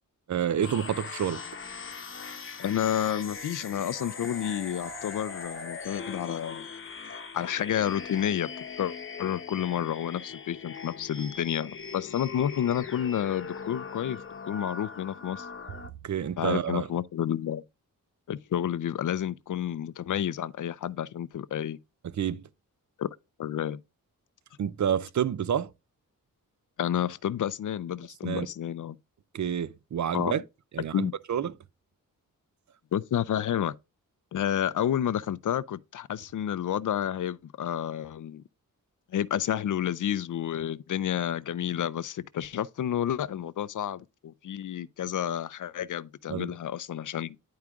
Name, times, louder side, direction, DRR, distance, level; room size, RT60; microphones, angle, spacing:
voice 1, 0.3-1.4 16.0-16.9 22.2-22.4 24.6-25.7 28.2-28.5 29.3-30.4 30.7-31.5 46.3-46.5, right 9 dB, 55° right, 0.5 m, -29 dB
sound 1, 0.6-15.9, left 5 dB, 35° left, 0.9 m, -40 dB
voice 2, 2.6-6.7 7.3-8.5 8.8-14.2 14.5-15.5 16.4-17.6 18.3-21.8 23.0-23.1 23.4-23.8 26.8-29.0 30.1-30.4 30.9-31.1 32.9-33.7 34.3-38.4 39.1-47.4, left 10 dB, 60° left, 0.5 m, -30 dB
sound 2, 3.5-7.2 7.5-7.6 7.9-8.0, left 1 dB, 90° right, 2.4 m, -48 dB
10.5 x 4.8 x 2.3 m
wide cardioid pair, 120°, 34 cm